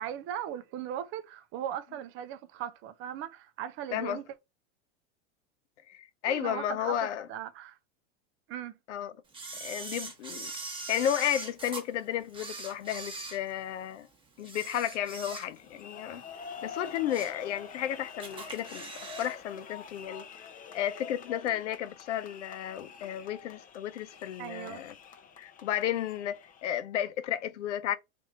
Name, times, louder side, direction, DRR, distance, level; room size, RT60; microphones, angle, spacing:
voice 1, 0.0-4.2 6.3-7.8 8.5-8.8 24.4-24.8, right 10 dB, 40° right, 0.5 m, -38 dB
voice 2, 5.9-7.3 8.9-9.1 9.6-10.5 10.9-14.1 14.4-16.2 16.6-20.2 20.7-24.9 25.4-28.0, left 11 dB, 90° left, 0.6 m, -33 dB
Camera, 9.3-11.8 12.3-13.9 14.4-15.8 16.1-16.3 16.8-17.4 17.8-17.9 18.2-19.4 19.6-19.7, right 3 dB, 15° right, 1.0 m, -41 dB
sound 1, 15.6-26.6, left 6 dB, 25° left, 0.6 m, -47 dB
2.8 x 2.6 x 4.2 m
supercardioid pair, 120°, 34 cm